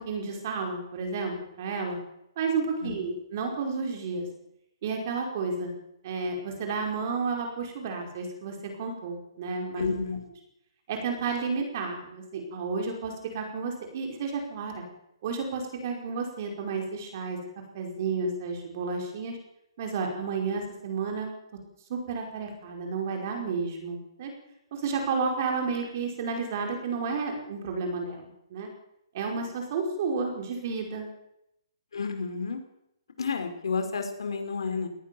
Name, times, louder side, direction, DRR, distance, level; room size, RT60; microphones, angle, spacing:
voice 1, 0.0-2.0 2.4-4.3 4.8-5.7 6.0-9.9 10.9-14.8 15.2-17.4 17.7-19.4 19.8-21.3 21.9-24.3 24.7-28.7 29.1-31.1, right 4 dB, 35° right, 2 dB, 5.2 m, -31 dB
voice 2, 9.8-10.2 31.9-32.6 33.2-34.9, left 5 dB, 80° left, 7 dB, 5.1 m, -31 dB
22.0 x 19.0 x 7.1 m, 0.83 s
hypercardioid pair, 175°, 3 cm